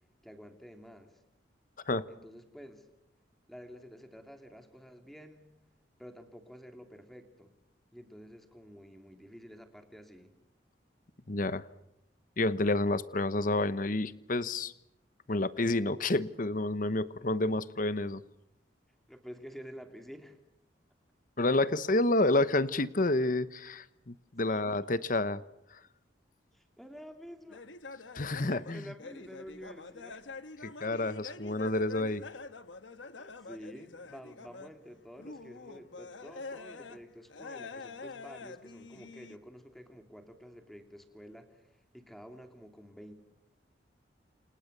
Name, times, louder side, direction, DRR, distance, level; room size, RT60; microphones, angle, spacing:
voice 1, 0.2-1.2 2.1-2.9 3.5-5.5 6.0-7.5 7.9-10.3 19.1-20.4 24.4-24.6 26.5-27.6 28.3-30.3 33.2-43.1, equal, ahead, 6 dB, 2.9 m, -50 dB
voice 2, 11.3-11.6 12.4-14.7 15.3-18.2 21.4-25.4 28.1-28.8 30.6-32.2, left 2 dB, 45° left, 15 dB, 1.1 m, -29 dB
sound 1, 27.5-34.9 35.2-37.0 37.3-39.4, left 3 dB, 85° left, 1.4 m, -46 dB
29.5 x 28.0 x 6.8 m, 0.83 s
head